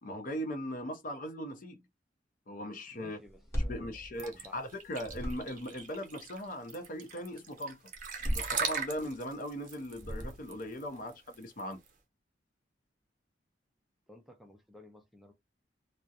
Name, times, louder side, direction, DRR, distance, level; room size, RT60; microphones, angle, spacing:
voice 1, 0.0-1.8 2.5-3.2 3.7-7.8 8.3-11.8, equal, 50° left, 0.6 m, -39 dB
voice 2, 2.9-3.9 4.3-4.6 14.1-15.3, left 1 dB, ahead, 0.4 m, -55 dB
sound 1, 3.2-4.7 5.0-5.8 7.9-9.2 9.9-10.7, equal, 15° left, 0.9 m, -37 dB
sound 2, 4.2-11.9, right 6 dB, 45° right, 0.6 m, -39 dB
2.4 x 2.0 x 2.7 m
head